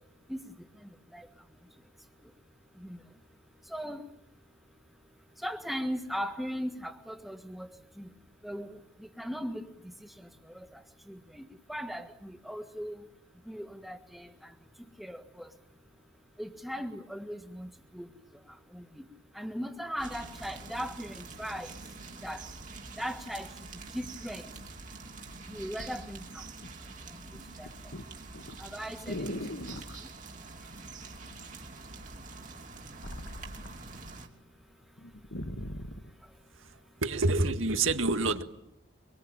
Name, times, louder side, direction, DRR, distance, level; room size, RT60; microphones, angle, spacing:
voice 1, 3.7-4.0 5.4-7.7 8.0-8.1 8.4-8.8 9.2-9.6 10.5-10.8 11.1-13.0 13.5-14.3 15.0-15.5 16.4-18.1 18.7-19.0 19.4-21.8 22.2-22.4 23.0-23.5 23.9-24.4 25.5-26.4 27.6-27.7 28.6-29.4, equal, ahead, 1.7 m, -38 dB
sound 1, 20.0-34.3, right 3 dB, 40° right, 2.9 m, -46 dB
sound 2, 23.0-23.1 23.7-25.1 25.8-26.0 26.4-26.8 27.1-30.0 31.1-31.6 31.9-34.2 34.6-34.7 35.0-36.1 36.8-36.9, left 1 dB, 70° left, 1.9 m, -41 dB
voice 2, 37.0-38.4, right 3 dB, 80° right, 1.9 m, -27 dB
24.5 x 24.0 x 9.0 m
head